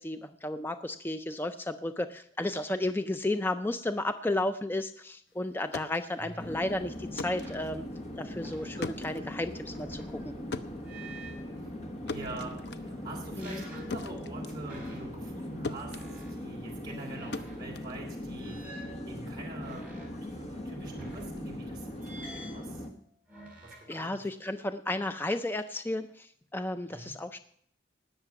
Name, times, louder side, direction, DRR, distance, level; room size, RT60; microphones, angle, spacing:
voice 1, 0.0-7.8 8.2-10.3 13.4-13.6 23.9-27.4, left 1 dB, 10° left, 9 dB, 0.4 m, -33 dB
sound 1, 5.5-15.4 15.6-18.6, left 3 dB, 60° left, 0.6 m, -43 dB
voice 2, 6.2-6.5 12.0-18.6 19.1-19.9 20.2-22.8 23.6-24.2 26.9-27.1, right 2 dB, 25° right, -2 dB, 3.0 m, -44 dB
sound 2, 6.4-22.9, left 1 dB, 35° left, 1.3 m, -40 dB
sound 3, 7.4-7.7 8.3-10.5 10.8-11.5 12.1-12.9 13.4-14.0 14.6-15.4 15.9-16.4 17.1-17.7 18.4-20.1 20.7-21.6 22.0-22.7 23.3-24.0, right 1 dB, 10° right, 4.3 m, -50 dB
19.0 x 6.6 x 5.9 m, 0.65 s
head